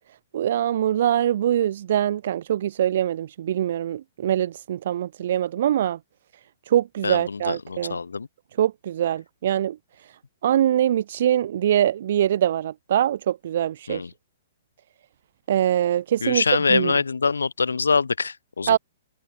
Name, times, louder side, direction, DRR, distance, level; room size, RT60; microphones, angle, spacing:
voice 1, 0.3-6.0 6.7-8.0 8.6-9.8 10.4-14.0 15.5-16.4 16.7-16.9 18.7-18.8, right 11 dB, 60° right, 0.4 m, -23 dB
voice 2, 7.0-8.3 13.9-14.1 16.2-18.8, left 4 dB, 85° left, 0.8 m, -24 dB
hypercardioid pair, 120°, 0 cm